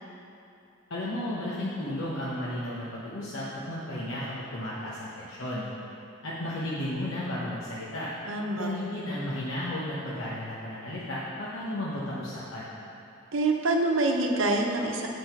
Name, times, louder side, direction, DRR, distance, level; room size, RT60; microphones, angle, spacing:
voice 1, 0.9-5.7 6.2-8.1 8.5-12.7, left 1 dB, 85° left, -7 dB, 1.1 m, -33 dB
voice 2, 8.2-8.7 13.3-15.1, right 2 dB, 80° right, 1 dB, 0.9 m, -26 dB
7.8 x 5.1 x 5.9 m, 2.7 s
head